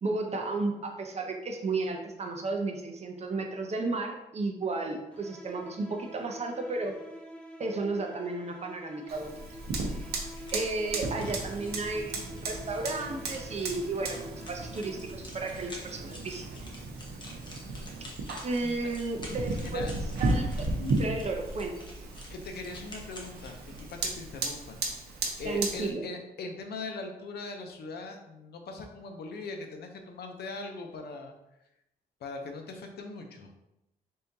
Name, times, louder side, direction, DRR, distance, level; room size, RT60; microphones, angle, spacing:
voice 1, 0.0-7.0 7.6-9.4 9.8-10.2 10.5-16.5 18.4-21.8 25.4-26.0, right 3 dB, 40° right, 3 dB, 0.7 m, -33 dB
sound 1, 5.1-15.3, left 1 dB, 5° left, 0.7 m, -47 dB
Fire, 9.1-25.9, right 2 dB, 85° right, 0.7 m, -35 dB
sound 2, 10.3-24.0, left 1 dB, 30° left, 1.0 m, -50 dB
voice 2, 19.3-19.9 22.3-24.8 25.4-31.3 32.2-33.5, left 3 dB, 80° left, 4 dB, 0.6 m, -40 dB
4.3 x 3.6 x 2.7 m, 0.89 s
cardioid pair, 115°, 16 cm